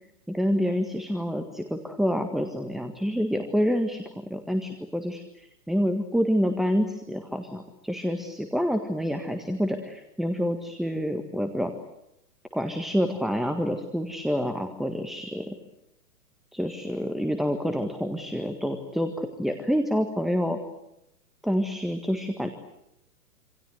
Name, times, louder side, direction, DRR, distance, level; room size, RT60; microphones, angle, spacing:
voice 1, 0.3-11.7 12.5-15.5 16.5-20.6 21.4-22.5, equal, ahead, 7 dB, 1.6 m, -27 dB
27.0 x 27.0 x 8.0 m, 0.83 s
figure-of-eight pair, 115°, 47 cm